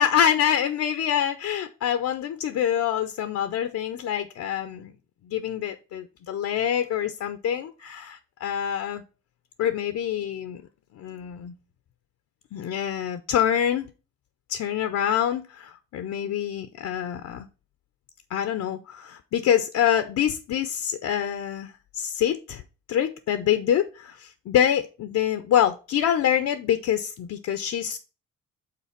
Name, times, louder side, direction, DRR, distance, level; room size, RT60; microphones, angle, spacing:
voice 1, 0.0-4.9 5.2-9.0 9.6-10.6 11.0-11.5 12.5-13.9 14.5-17.5 18.3-22.6 22.9-28.0, left 10 dB, 65° left, 10 dB, 0.7 m, -26 dB
5.8 x 3.9 x 5.8 m, 0.33 s
cardioid pair, 90°, 30 cm